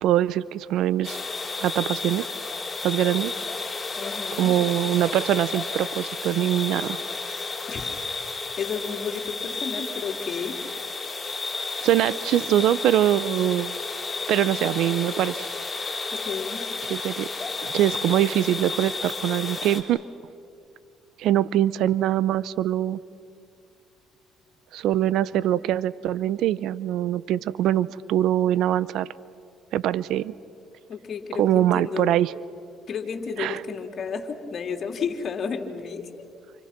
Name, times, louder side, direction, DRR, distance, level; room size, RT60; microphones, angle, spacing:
voice 1, 0.0-1.2 1.6-2.3 2.8-3.3 4.4-7.0 11.8-13.8 14.3-15.5 16.9-17.3 17.7-20.0 21.2-23.0 24.7-29.1 29.7-30.3 31.4-32.3 33.4-33.6, right 12 dB, 70° right, 18 dB, 0.7 m, -23 dB
sound 1, 1.0-19.8, left 3 dB, 25° left, 5.1 m, -32 dB
voice 2, 4.0-4.5 7.7-7.9 8.6-10.6 16.1-16.6 30.9-32.2 32.9-36.2, left 6 dB, 50° left, 3 dB, 3.4 m, -32 dB
29.5 x 28.5 x 6.0 m, 2.4 s
supercardioid pair, 85°, 0 cm